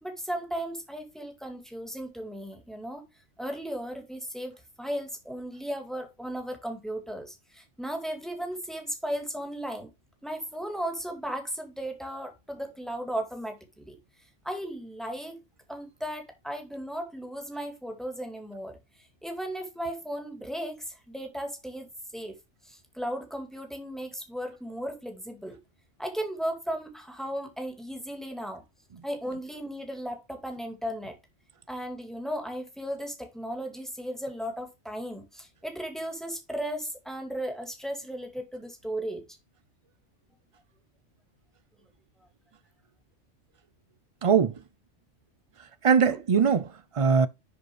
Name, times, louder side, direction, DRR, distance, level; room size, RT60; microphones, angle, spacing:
voice 1, 0.0-3.0 3.4-9.9 10.2-14.0 14.4-15.4 15.7-18.8 19.2-21.9 22.1-22.3 22.6-25.6 26.0-28.6 29.0-31.2 31.7-39.2 46.1-46.2, equal, ahead, 2.3 m, -36 dB
voice 2, 44.2-44.5 45.8-47.3, right 6 dB, 45° right, 0.4 m, -21 dB
11.0 x 5.1 x 3.1 m
omnidirectional pair, 1.3 m